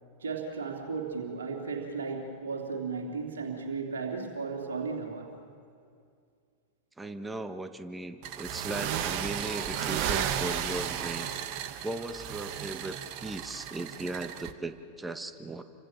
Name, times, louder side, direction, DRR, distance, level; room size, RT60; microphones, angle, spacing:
voice 1, 0.2-5.3, right 4 dB, 65° right, 1 dB, 3.1 m, -35 dB
voice 2, 7.0-11.3 11.8-15.6, right 2 dB, 10° right, 9 dB, 1.4 m, -37 dB
sound 1, 8.2-14.5, right 10 dB, 45° right, 1.3 m, -34 dB
30.0 x 25.5 x 7.3 m, 2.3 s
figure-of-eight pair, 90°, 0 cm